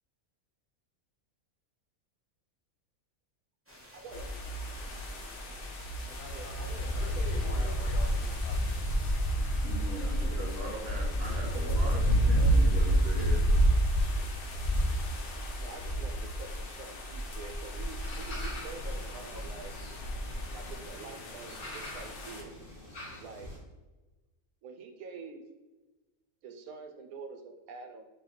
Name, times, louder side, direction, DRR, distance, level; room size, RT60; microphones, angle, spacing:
sound 1, 3.7-8.8, equal, 15° right, 0.5 m, -53 dB
voice 1, 3.9-4.2 6.3-7.8 10.3-10.5 11.1-12.7 15.6-19.7 20.5-22.5 23.2-23.5 24.6-25.4 26.4-28.1, right 4 dB, 90° right, 5 dB, 1.0 m, -46 dB
sound 2, 4.1-22.4, equal, 60° left, 0.6 m, -30 dB
voice 2, 6.0-8.9, left 2 dB, 75° left, 2 dB, 1.1 m, -47 dB
voice 3, 9.6-13.5, right 1 dB, 55° right, -3 dB, 0.8 m, -40 dB
sound 3, 18.0-23.6, left 1 dB, 30° left, 1.0 m, -46 dB
3.2 x 2.8 x 3.9 m, 1.2 s
omnidirectional pair, 1.5 m